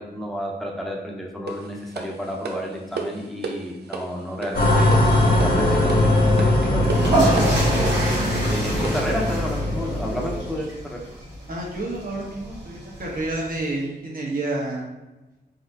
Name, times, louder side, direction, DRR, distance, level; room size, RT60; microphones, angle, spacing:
voice 1, 0.0-5.0 5.4-11.0, equal, ahead, -2 dB, 0.9 m, -31 dB
sound 1, 1.5-9.2, right 4 dB, 75° right, 0.5 m, -35 dB
sound 2, 4.5-10.6, left 1 dB, 55° left, 1.2 m, -20 dB
sound 3, 6.7-13.6, right 2 dB, 90° right, 1.3 m, -28 dB
voice 2, 11.5-14.9, right 2 dB, 55° right, -3 dB, 1.2 m, -29 dB
4.1 x 3.5 x 2.8 m, 1.0 s
wide cardioid pair, 100°, 17 cm